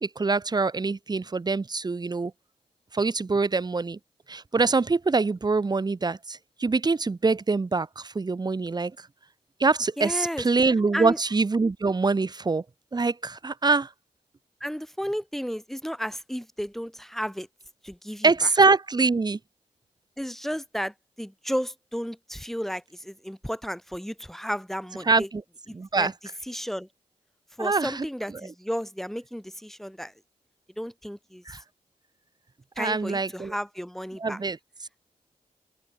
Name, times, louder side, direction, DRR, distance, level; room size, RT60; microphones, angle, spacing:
voice 1, 0.0-2.3 2.9-4.0 4.3-8.9 9.6-12.6 12.9-13.9 18.2-19.4 25.0-25.4 25.7-26.1 27.6-28.1 31.5-31.6 32.8-33.5 34.2-34.6, right 3 dB, 30° right, 0.6 m, -24 dB
voice 2, 10.0-10.4 10.9-11.2 14.6-17.5 17.8-18.5 20.2-25.3 25.7-26.1 26.5-26.9 27.6-30.1 30.8-31.4 32.8-34.4, equal, ahead, 2.5 m, -33 dB
open air
cardioid pair, 50°, 14 cm